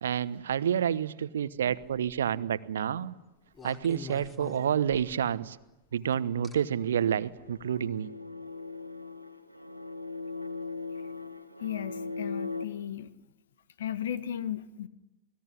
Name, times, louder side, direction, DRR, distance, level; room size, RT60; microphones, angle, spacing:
voice 1, 0.0-3.1 3.6-5.6 5.9-8.1, right 9 dB, 65° right, 17 dB, 1.1 m, -29 dB
sound 1, 1.7-2.2 3.5-5.3 6.4-6.6 7.4-7.6, left 1 dB, 15° left, 3.8 m, -45 dB
sound 2, 6.7-12.6, left 3 dB, 90° left, 1.7 m, -39 dB
voice 2, 11.6-13.1 13.8-14.9, left 10 dB, 60° left, 15 dB, 1.6 m, -35 dB
28.5 x 20.0 x 9.9 m, 1.0 s
figure-of-eight pair, 90°, 0 cm